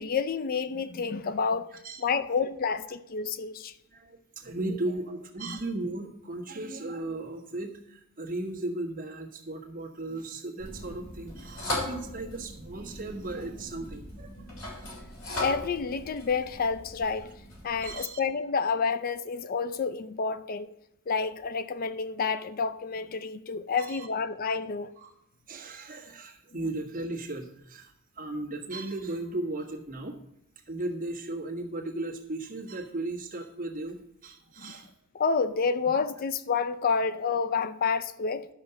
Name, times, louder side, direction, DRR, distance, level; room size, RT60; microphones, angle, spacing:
voice 1, 0.0-1.7 2.0-3.7 4.7-4.8 5.5-5.6 15.4-17.3 17.6-20.7 21.1-24.9 34.6-34.7 35.1-38.5, left 5 dB, 45° left, 0.4 m, -29 dB
voice 2, 3.9-14.5 17.8-18.2 23.8-24.1 25.0-25.1 25.5-30.2 30.6-34.9, right 2 dB, 40° right, 1.6 m, -36 dB
sound 1, 10.6-17.9, left 2 dB, 75° left, 3.6 m, -38 dB
11.5 x 5.3 x 6.9 m
head